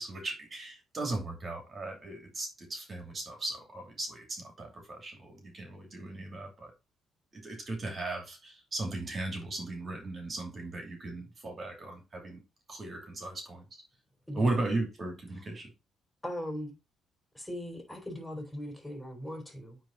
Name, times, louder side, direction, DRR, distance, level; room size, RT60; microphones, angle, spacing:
voice 1, 0.0-6.7 7.3-12.4 12.7-13.8 14.3-15.7, right 2 dB, 40° right, 2.5 m, -37 dB
voice 2, 16.2-16.7 17.3-19.8, equal, 10° left, 3.5 m, -39 dB
9.1 x 3.6 x 3.9 m
cardioid pair, 90°, 0 cm